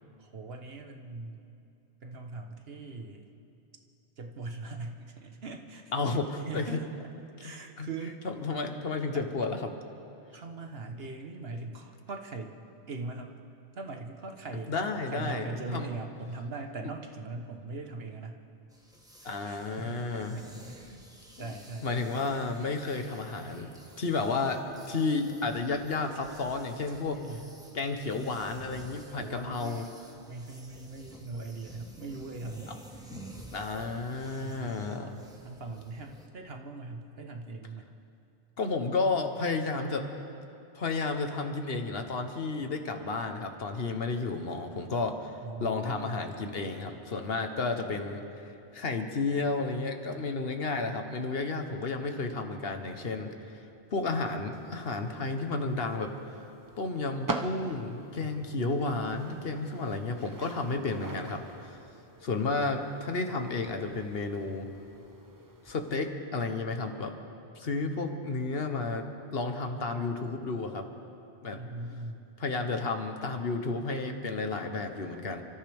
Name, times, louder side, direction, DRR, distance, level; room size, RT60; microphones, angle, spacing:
voice 1, 0.2-1.5 2.0-3.3 4.2-5.9 6.4-6.8 7.4-8.2 9.1-9.3 10.3-12.5 12.9-13.4 13.8-14.8 15.1-18.4 19.2-21.0 21.4-22.1 26.9-27.5 29.1-29.9 30.3-33.1 34.4-35.1 35.4-37.9 45.4-46.2 58.2-58.8 71.5-72.3, right 3 dB, 60° right, 4 dB, 1.3 m, -41 dB
voice 2, 5.9-6.8 7.8-7.9 8.2-9.7 10.7-10.8 14.7-15.9 19.2-20.4 21.4-21.5 21.8-27.2 27.7-29.8 33.1-35.2 38.6-40.1 40.7-45.3 45.6-48.5 48.7-53.6 53.9-56.1 56.8-61.8 62.2-64.7 65.6-67.1 67.6-70.9 71.4-71.6 72.4-75.4, left 3 dB, 60° left, 6 dB, 1.3 m, -32 dB
sound 1, 18.7-36.3, right 1 dB, 5° right, 1.4 m, -51 dB
sound 2, 54.5-66.0, right 2 dB, 20° right, 0.8 m, -44 dB
29.5 x 14.0 x 3.5 m, 2.7 s
omnidirectional pair, 1.1 m